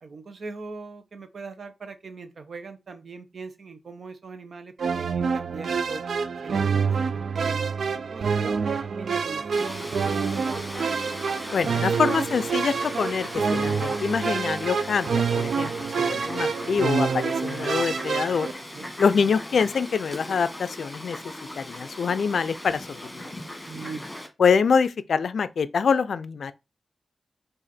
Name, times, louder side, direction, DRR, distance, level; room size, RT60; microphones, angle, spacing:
voice 1, 0.0-6.0 6.4-7.7 8.1-10.7 18.7-18.9 23.7-24.2, right 4 dB, 65° right, 0.7 m, -40 dB
sound 1, 4.8-18.5, right 5 dB, 85° right, 0.3 m, -27 dB
Fowl, 9.5-24.3, left 1 dB, 10° left, 1.4 m, -38 dB
voice 2, 11.5-15.7 16.0-18.5 19.0-21.2 21.6-23.4 24.4-26.5, left 6 dB, 80° left, 0.4 m, -25 dB
4.9 x 2.5 x 4.2 m
wide cardioid pair, 105°, 0 cm